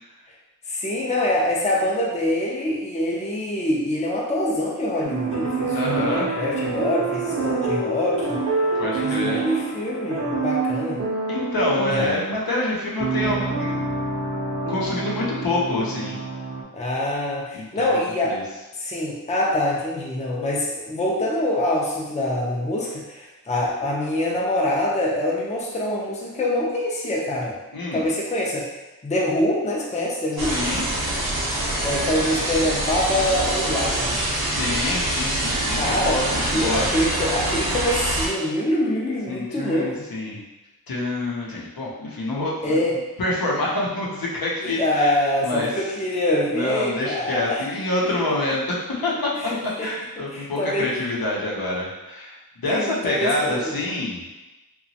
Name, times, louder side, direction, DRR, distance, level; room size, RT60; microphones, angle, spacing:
voice 1, 0.7-8.4 9.0-11.0 11.9-12.1 16.7-18.4 18.8-27.6 27.9-28.7 29.0-30.6 31.8-34.2 35.7-39.9 42.6-43.0 44.6-47.6 48.0-48.1 49.4-49.9 50.3-50.9 52.7-53.8, left 1 dB, 20° left, -4 dB, 0.5 m, -25 dB
sound 1, 5.0-16.6, right 3 dB, 50° right, 0.6 m, -27 dB
voice 2, 5.7-6.3 8.8-9.4 11.3-13.8 14.7-16.2 17.5-17.9 18.3-18.4 27.7-28.1 30.4-30.8 34.5-36.9 39.3-40.4 40.9-42.8 43.2-45.2 45.4-45.7 46.5-49.3 49.8-54.3, left 2 dB, 75° left, -5 dB, 0.7 m, -26 dB
sound 2, 30.4-38.3, right 1 dB, 85° right, 0.8 m, -25 dB
2.9 x 2.2 x 2.7 m, 1.1 s
wide cardioid pair, 85°, 36 cm